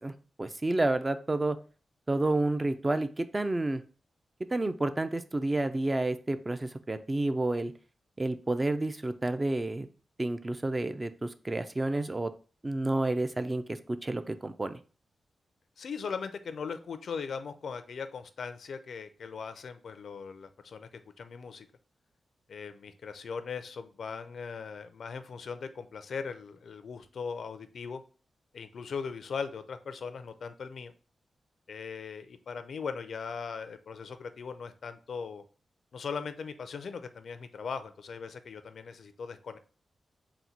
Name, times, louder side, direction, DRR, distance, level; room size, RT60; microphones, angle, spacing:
voice 1, 0.0-1.6 2.1-3.8 4.5-7.7 8.2-9.9 10.2-12.3 12.6-14.8, right 2 dB, 25° right, 10 dB, 0.4 m, -30 dB
voice 2, 15.8-20.9 21.2-21.7 22.5-28.0 28.5-30.9 31.7-35.4 35.9-39.6, left 5 dB, 75° left, 10 dB, 0.4 m, -39 dB
4.0 x 2.2 x 4.3 m, 0.38 s
cardioid pair, 80°, 0 cm